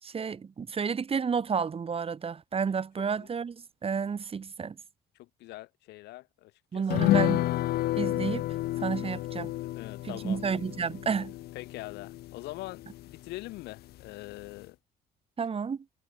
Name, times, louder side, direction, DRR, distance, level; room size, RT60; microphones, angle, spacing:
voice 1, 0.0-4.8 6.7-7.5 8.0-8.5 8.8-9.5 10.0-11.3 15.4-15.8, right 6 dB, 35° right, 6.5 m, -31 dB
voice 2, 3.0-3.3 5.2-7.0 9.6-10.4 11.5-14.8, left 18 dB, 85° left, 4.4 m, -43 dB
sound 1, 6.9-13.7 14.0-14.1 14.4-14.6, left 16 dB, 70° left, 0.6 m, -31 dB
cardioid pair, 110°, 17 cm